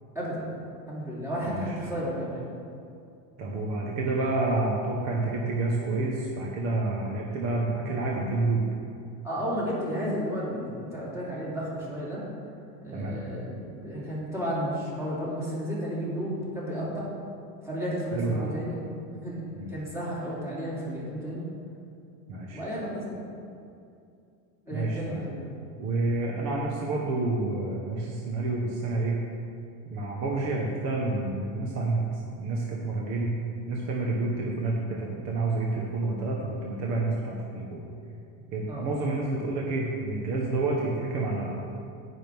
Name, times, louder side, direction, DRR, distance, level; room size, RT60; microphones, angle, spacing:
voice 1, 0.1-0.5 0.9-2.4 9.2-12.2 12.8-17.1 17.6-18.8 19.2-21.4 22.5-23.2 24.7-25.4 38.7-38.9, equal, 5° right, -8 dB, 2.5 m, -32 dB
voice 2, 1.5-2.0 3.4-8.6 12.9-13.2 18.1-18.5 19.5-19.7 22.3-22.6 24.7-25.3 25.8-29.2 29.9-32.0 32.4-33.3 33.7-37.8 38.5-41.6, right 2 dB, 40° right, -2 dB, 1.1 m, -29 dB
18.0 x 6.3 x 3.5 m, 2.5 s
cardioid pair, 175°, 42 cm